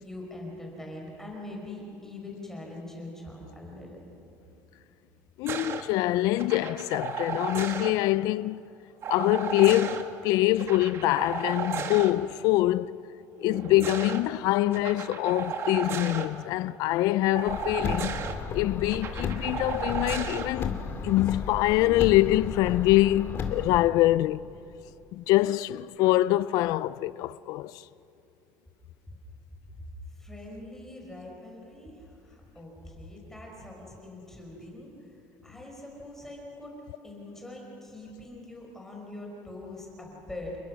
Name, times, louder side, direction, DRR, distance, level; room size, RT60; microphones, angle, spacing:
voice 1, 0.0-4.0 29.7-29.8 30.1-35.1 35.4-36.8 37.0-40.6, left 1 dB, 5° left, 4.8 m, -43 dB
voice 2, 5.4-8.6 9.1-13.0 13.4-18.2 18.5-20.8 21.0-24.5 25.1-27.8, left 16 dB, 70° left, 0.4 m, -24 dB
sound 1, 5.5-5.8 6.4-7.9 9.0-10.0 10.6-12.1 13.4-14.2 14.7-16.3 17.3-18.3 18.9-20.5 21.8-22.1, right 6 dB, 40° right, 1.7 m, -34 dB
Car, 17.5-23.8, left 6 dB, 35° left, 2.3 m, -34 dB
29.0 x 21.5 x 6.2 m
cardioid pair, 145°, 7 cm